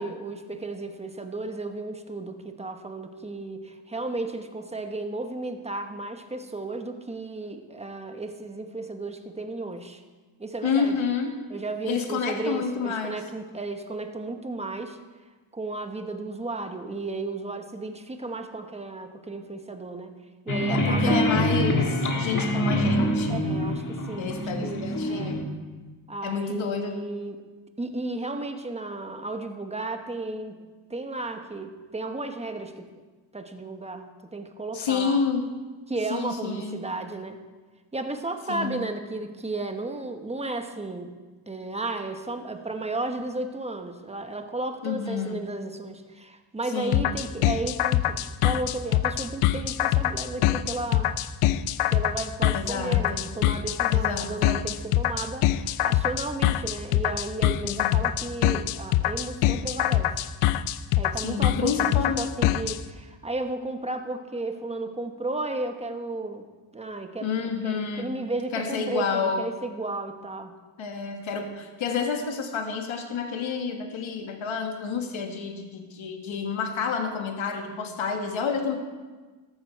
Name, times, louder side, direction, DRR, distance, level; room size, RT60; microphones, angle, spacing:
voice 1, 0.0-10.0 10.4-11.0 11.5-15.0 15.5-20.2 20.4-21.3 23.3-25.4 26.1-27.4 27.8-30.6 30.9-32.9 33.3-35.2 35.9-37.4 37.9-41.1 41.5-51.1 51.9-60.1 61.0-66.5 66.7-70.5, right 2 dB, 15° right, 6 dB, 1.1 m, -34 dB
voice 2, 10.6-11.3 11.8-13.2 20.7-23.6 24.2-25.4 26.2-27.0 34.7-35.4 36.1-36.8 38.5-38.8 44.8-45.4 46.7-47.1 52.5-53.2 53.9-54.6 57.6-58.3 61.2-62.2 67.2-68.2 68.5-69.4 70.8-78.8, left 5 dB, 70° left, 4 dB, 1.9 m, -29 dB
sound 1, 20.5-25.4, equal, 40° left, 1.8 m, -25 dB
sound 2, 46.9-62.8, left 13 dB, 85° left, 0.6 m, -24 dB
14.0 x 12.5 x 4.6 m, 1.3 s
cardioid pair, 125°, 49 cm